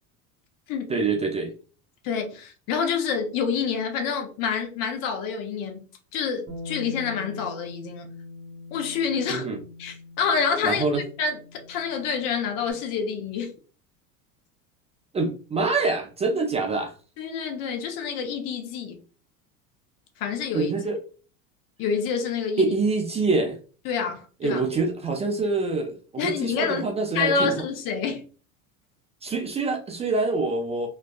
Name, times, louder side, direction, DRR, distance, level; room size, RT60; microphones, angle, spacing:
voice 1, 0.9-1.5 9.3-9.6 10.6-11.0 15.1-16.9 20.5-21.0 22.6-23.6 24.4-27.5 29.2-30.9, right 3 dB, 15° right, 0.3 m, -25 dB
voice 2, 2.0-5.8 6.1-8.1 8.7-9.5 9.8-10.8 11.2-13.5 17.2-19.0 20.2-20.7 21.8-22.7 23.8-24.6 26.2-26.9 27.1-28.2, left 6 dB, 55° left, 0.8 m, -27 dB
Bass guitar, 6.5-12.7, left 3 dB, 35° right, 0.9 m, -42 dB
2.5 x 2.2 x 2.3 m
hypercardioid pair, 90°, 41 cm